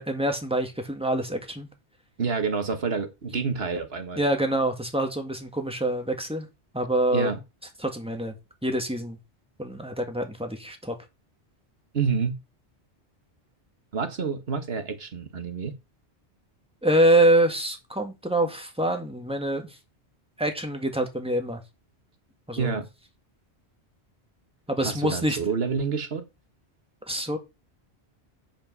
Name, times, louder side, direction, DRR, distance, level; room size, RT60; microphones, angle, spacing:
voice 1, 0.0-1.7 4.2-6.5 6.7-7.3 7.8-8.3 8.6-9.2 9.6-11.0 16.8-19.7 20.4-21.6 22.5-22.8 24.7-25.4 27.1-27.4, right 1 dB, 5° right, 1.9 m, -25 dB
voice 2, 2.2-4.2 7.1-7.4 11.9-12.4 13.9-15.7 22.6-22.9 24.8-26.2, right 5 dB, 65° right, 1.6 m, -28 dB
9.0 x 5.3 x 5.4 m
omnidirectional pair, 1.1 m